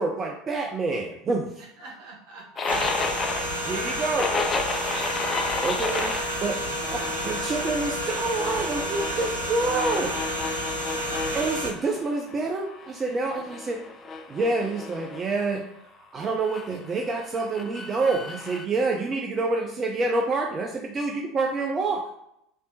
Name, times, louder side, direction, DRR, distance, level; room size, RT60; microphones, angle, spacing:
voice 1, 0.0-1.5 3.6-4.3 5.6-6.1 6.4-6.6 6.9-10.1 11.3-13.8 14.3-15.7 16.1-22.1, right 3 dB, 30° right, 1 dB, 0.5 m, -27 dB
voice 2, 1.6-4.4 5.2-5.5 6.9-7.2 10.9-11.3, right 2 dB, 60° right, -2 dB, 1.2 m, -48 dB
sound 1, 2.6-12.3 12.7-15.2 16.4-18.6, left 3 dB, 30° left, 0.4 m, -33 dB
sound 2, 2.7-11.7, equal, 85° right, 0.7 m, -30 dB
3.3 x 2.7 x 2.7 m, 0.76 s
figure-of-eight pair, 70°, 0 cm